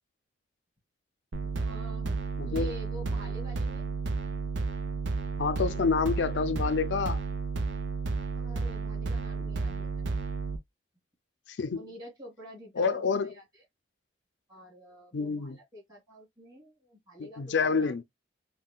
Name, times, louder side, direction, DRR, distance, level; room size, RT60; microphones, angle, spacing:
sound 1, 1.3-10.6, right 4 dB, 90° right, 0.6 m, -32 dB
voice 1, 1.6-2.2 2.4-3.9 8.3-10.2 11.7-13.1 13.3-13.4 14.5-17.9, equal, 25° right, 2.9 m, -48 dB
voice 2, 2.4-2.7 5.4-7.2 9.4-9.5 11.5-11.8 12.8-13.4 15.1-15.6 17.2-18.0, left 5 dB, 80° left, 0.5 m, -28 dB
5.4 x 2.2 x 2.3 m
head